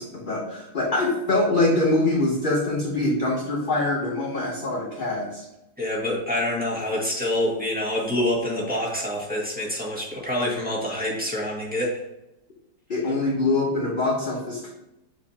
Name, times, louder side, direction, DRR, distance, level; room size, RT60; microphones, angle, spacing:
voice 1, 0.0-5.4 12.9-14.7, left 2 dB, 45° left, -2 dB, 0.7 m, -24 dB
voice 2, 5.8-11.9, left 1 dB, 5° right, -5 dB, 1.5 m, -26 dB
7.4 x 4.8 x 2.8 m, 0.93 s
omnidirectional pair, 1.9 m